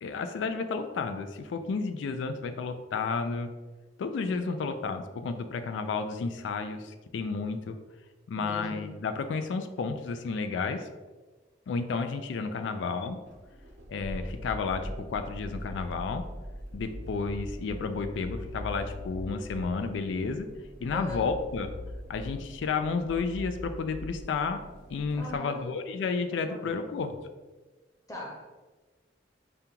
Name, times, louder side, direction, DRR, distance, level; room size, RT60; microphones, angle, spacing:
voice 1, 0.0-3.5 4.0-7.8 8.3-10.9 11.7-13.2 13.9-16.3 16.7-20.5 20.8-21.7 22.1-24.6 24.9-27.2, left 4 dB, 85° left, 8 dB, 0.3 m, -32 dB
voice 2, 4.2-4.7 8.4-8.9 20.9-21.3 25.1-25.6 26.4-26.7 28.1-28.5, left 1 dB, 20° left, -2 dB, 0.7 m, -40 dB
sound 1, 13.2-25.4, equal, 90° right, 0.9 m, -42 dB
5.1 x 2.3 x 2.8 m, 1.2 s
head